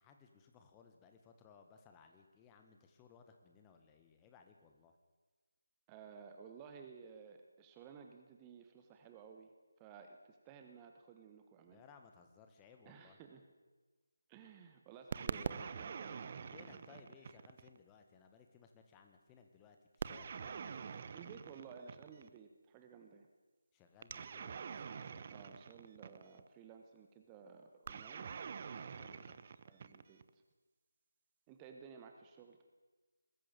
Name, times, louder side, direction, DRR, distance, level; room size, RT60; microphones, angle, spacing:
voice 1, 0.0-4.9 11.7-13.2 16.5-21.0 23.7-24.5 25.1-25.3 29.0-29.4, left 6 dB, 10° left, 5 dB, 1.5 m, -62 dB
voice 2, 5.9-11.8 12.8-13.5 14.3-16.8 21.1-23.3 25.3-28.3 29.6-30.4 31.5-32.6, right 6 dB, 15° right, 5 dB, 1.2 m, -56 dB
sound 1, 15.1-17.8 20.0-22.4 24.0-26.5 27.9-30.3, right 6 dB, 30° right, 0.8 m, -45 dB
20.5 x 14.0 x 9.2 m, 1.3 s
figure-of-eight pair, 155°, 0 cm